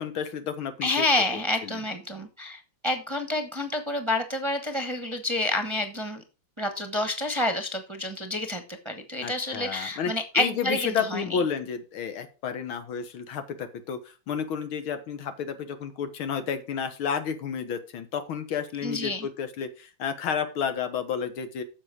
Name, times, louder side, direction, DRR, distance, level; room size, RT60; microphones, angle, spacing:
voice 1, 0.0-1.0 1.6-1.8 9.2-14.0 14.3-21.6, left 7 dB, 85° left, 9 dB, 2.1 m, -31 dB
voice 2, 0.8-6.2 6.6-11.4 18.8-19.3, left 2 dB, 20° right, 6 dB, 0.9 m, -29 dB
9.7 x 6.9 x 4.9 m, 0.32 s
omnidirectional pair, 2.2 m